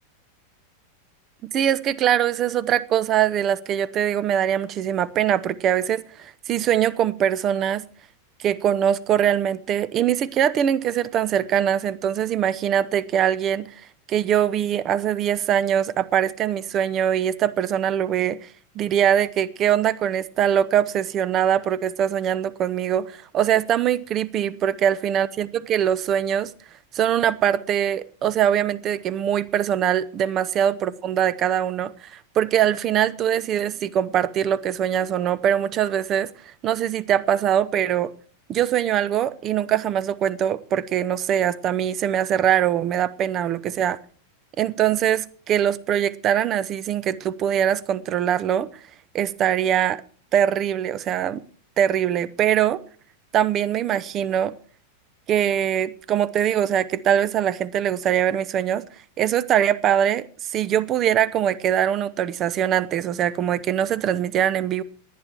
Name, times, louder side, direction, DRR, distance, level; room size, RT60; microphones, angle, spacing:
voice 1, 1.4-7.8 8.4-13.7 14.1-18.4 18.7-26.5 26.9-36.3 36.6-38.1 38.5-44.0 44.6-48.7 49.1-50.0 50.3-51.4 51.8-52.8 53.3-54.5 55.3-58.9 59.2-64.8, right 10 dB, 30° right, 0.8 m, -22 dB
18.5 x 10.5 x 4.5 m
figure-of-eight pair, 90°, 0 cm